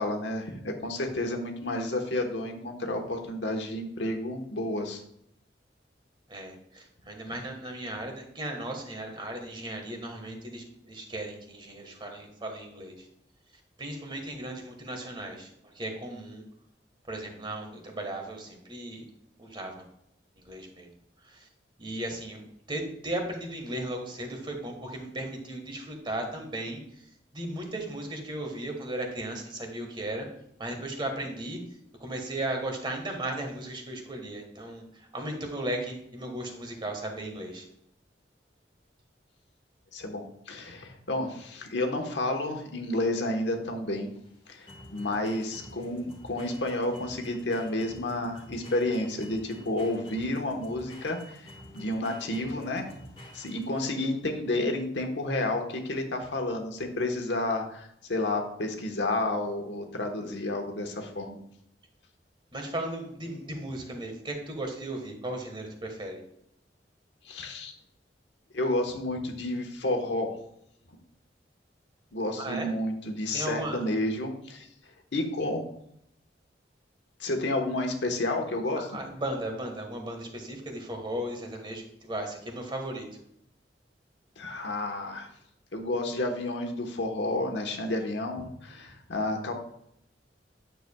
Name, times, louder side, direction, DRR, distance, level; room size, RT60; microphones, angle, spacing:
voice 1, 0.0-5.0 39.9-44.1 44.5-44.7 44.9-51.4 51.7-52.9 53.3-61.4 67.2-67.7 68.5-70.4 72.1-74.7 75.1-75.6 77.2-78.9 84.4-85.3 85.7-89.5, left 2 dB, 90° left, 3 dB, 1.1 m, -30 dB
voice 2, 6.3-13.1 13.8-15.5 15.7-16.4 17.1-19.0 19.4-19.7 20.4-20.9 21.2-21.5 21.8-22.4 22.7-26.8 27.3-30.3 30.6-31.6 32.0-37.7 62.5-66.2 72.4-72.7 73.3-73.8 78.8-83.1, right 1 dB, 30° right, 3 dB, 1.4 m, -36 dB
sound 1, 42.7-54.1, left 1 dB, 35° left, 1.7 m, -49 dB
9.2 x 6.8 x 2.3 m, 0.74 s
head